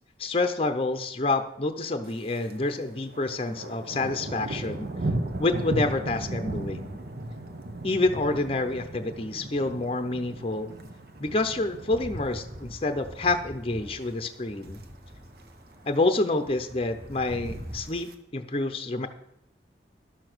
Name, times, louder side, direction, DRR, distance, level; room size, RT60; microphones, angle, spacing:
voice 1, 0.2-4.9 5.4-7.0 7.8-10.7 11.2-14.8 15.8-19.1, left 2 dB, 30° left, 8 dB, 0.7 m, -28 dB
Thunder, 2.0-2.6 2.9-13.2 13.6-14.0 14.4-14.8 15.1-15.2 15.4-15.5 15.9-16.4 17.2-18.1, right 1 dB, 60° right, 1.0 m, -36 dB
sound 1, 6.6-17.8, equal, 20° right, 0.9 m, -45 dB
11.5 x 7.0 x 6.1 m, 0.81 s
head